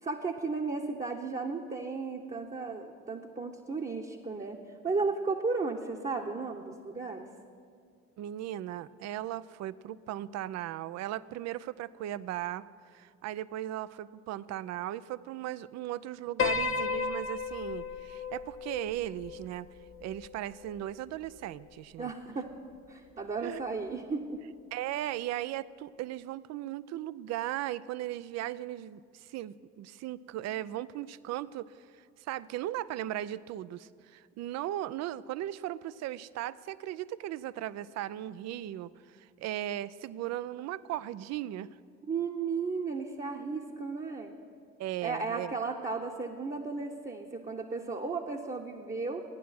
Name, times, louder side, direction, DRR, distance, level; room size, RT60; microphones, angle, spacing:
voice 1, 0.0-4.6 4.8-7.3 22.0-22.5 22.9-24.4 42.0-44.4 45.0-49.2, right 4 dB, 25° right, 1 dB, 1.0 m, -34 dB
voice 2, 8.2-12.7 12.9-19.7 20.0-22.1 23.4-23.6 24.7-41.7 44.8-45.5, right 13 dB, 50° right, 18 dB, 0.5 m, -37 dB
Piano, 16.4-20.8, left 5 dB, 40° left, 0.8 m, -34 dB
14.0 x 10.0 x 5.8 m, 2.2 s
hypercardioid pair, 55°, 35 cm